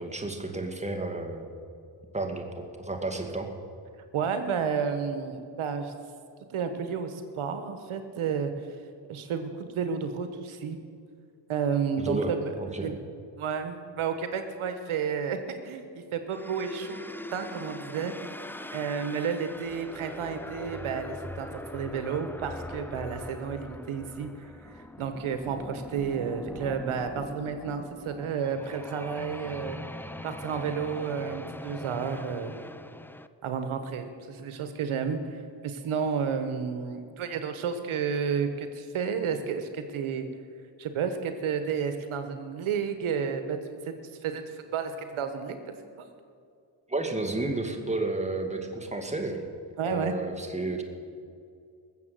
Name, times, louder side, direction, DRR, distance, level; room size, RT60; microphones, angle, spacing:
voice 1, 0.0-1.5 2.1-3.5 12.0-12.9 46.9-49.5 49.8-50.8, right 2 dB, 15° right, 4 dB, 2.2 m, -32 dB
voice 2, 4.1-5.9 6.5-8.5 9.1-10.8 11.5-12.5 12.8-13.0 13.4-15.9 16.1-17.0 17.3-18.1 18.7-21.5 21.7-29.8 30.2-32.5 33.4-40.3 40.8-43.8 44.2-46.1 49.8-50.1, right 6 dB, 85° right, 8 dB, 1.4 m, -31 dB
sound 1, 16.3-33.3, left 1 dB, 5° left, 0.5 m, -42 dB
20.5 x 7.5 x 7.8 m, 2.4 s
cardioid pair, 75°, 48 cm